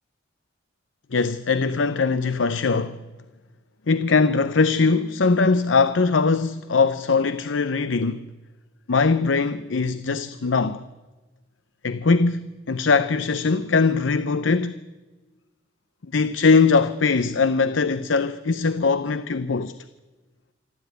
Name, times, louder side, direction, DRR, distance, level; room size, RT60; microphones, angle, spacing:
voice 1, 1.1-3.0 3.9-8.2 8.9-10.8 11.8-14.8 16.1-19.8, left 4 dB, 90° left, 0.7 m, -21 dB
27.0 x 12.5 x 9.3 m
head